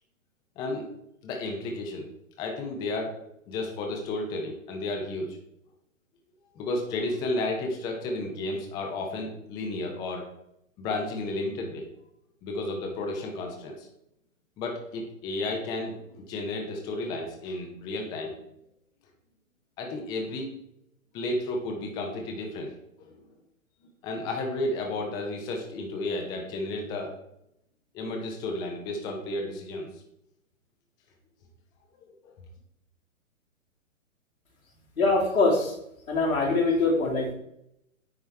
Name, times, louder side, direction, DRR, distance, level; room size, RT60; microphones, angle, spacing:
voice 1, 0.6-0.9 1.2-2.1 2.4-3.2 3.5-5.4 6.6-10.2 10.8-11.9 12.4-13.9 14.6-18.3 19.8-20.5 21.1-22.7 23.0-23.2 24.0-27.1 27.9-29.9 32.2-32.3, left 2 dB, 10° left, 1 dB, 0.4 m, -32 dB
voice 2, 35.0-35.7 36.1-37.3, left 3 dB, 85° left, -4 dB, 2.5 m, -23 dB
9.3 x 3.3 x 3.2 m, 0.78 s
hypercardioid pair, 125°, 41 cm